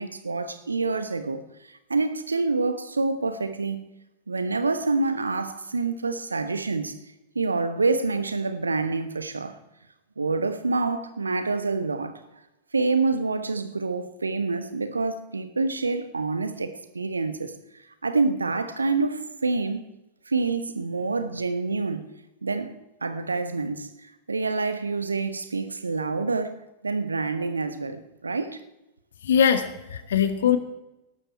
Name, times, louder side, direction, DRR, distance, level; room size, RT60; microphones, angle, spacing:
voice 1, 0.0-1.4 1.9-3.8 4.3-7.0 7.3-9.6 10.2-12.2 12.7-17.5 18.0-19.8 20.3-22.1 22.4-22.7 23.0-23.9 24.3-28.6, right 3 dB, 75° right, 1.1 m, -27 dB
voice 2, 29.2-30.6, left 8 dB, 65° left, 1.3 m, -21 dB
17.0 x 12.5 x 4.5 m
figure-of-eight pair, 90°, 0 cm